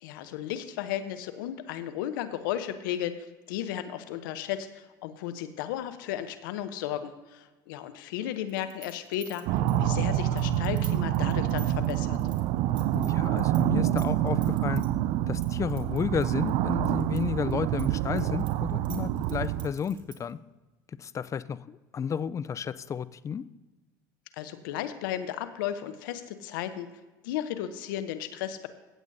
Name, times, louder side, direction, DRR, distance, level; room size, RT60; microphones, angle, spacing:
voice 1, 0.0-3.1 3.5-12.2 24.3-26.9 27.2-28.7, left 11 dB, 75° left, 11 dB, 0.8 m, -34 dB
sound 1, 8.5-13.6 13.9-14.9 15.4-17.2 17.5-20.3, right 7 dB, 45° right, 1.7 m, -48 dB
sound 2, 9.5-19.7, right 13 dB, 60° right, 0.4 m, -27 dB
voice 2, 12.9-14.8 15.3-20.4 21.0-23.4, left 7 dB, 30° left, 16 dB, 0.4 m, -32 dB
15.5 x 8.1 x 2.7 m, 1.2 s
hypercardioid pair, 80°, 11 cm